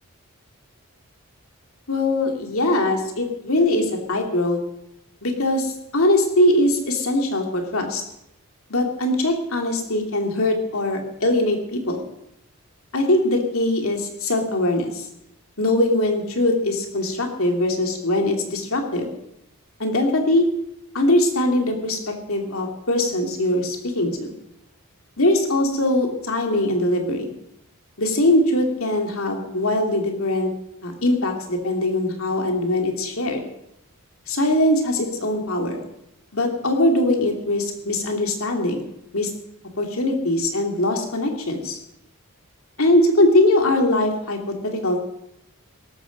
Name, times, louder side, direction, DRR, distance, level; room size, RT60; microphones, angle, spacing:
voice 1, 1.9-4.6 5.2-8.0 8.7-12.0 12.9-15.1 15.6-19.1 19.8-20.5 20.9-24.3 25.2-27.3 28.0-30.5 30.8-33.4 34.3-35.8 36.3-39.3 39.8-41.8 42.8-45.0, left 1 dB, 65° left, 3 dB, 2.9 m, -21 dB
17.5 x 13.5 x 5.3 m, 0.80 s
head